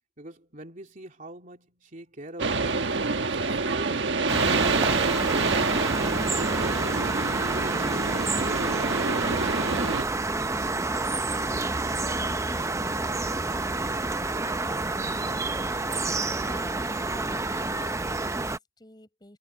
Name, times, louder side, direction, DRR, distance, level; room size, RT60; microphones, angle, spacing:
voice 1, 0.2-3.1 3.4-6.9 7.4-9.4, right 1 dB, 45° right, 3.1 m, -43 dB
sound 1, 2.4-10.0, right 4 dB, 70° right, 1.4 m, -27 dB
sound 2, 4.3-18.6, right 2 dB, 15° right, 0.7 m, -28 dB
voice 2, 10.6-19.4, left 2 dB, 20° left, 7.6 m, -49 dB
head